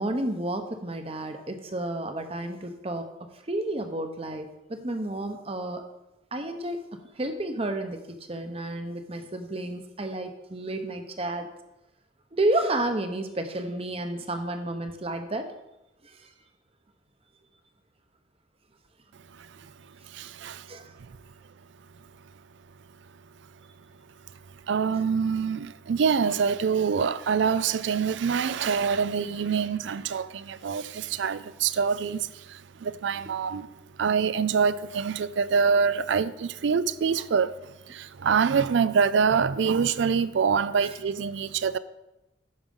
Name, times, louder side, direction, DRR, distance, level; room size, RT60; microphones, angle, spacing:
voice 1, 0.0-3.1 3.5-5.8 6.3-6.8 7.2-11.5 12.3-15.5 20.7-20.9 40.8-40.9, right 1 dB, 30° right, 0.8 m, -31 dB
voice 2, 20.1-20.7 24.7-33.7 34.0-41.8, right 6 dB, 70° right, 0.4 m, -25 dB
8.7 x 6.2 x 5.4 m
head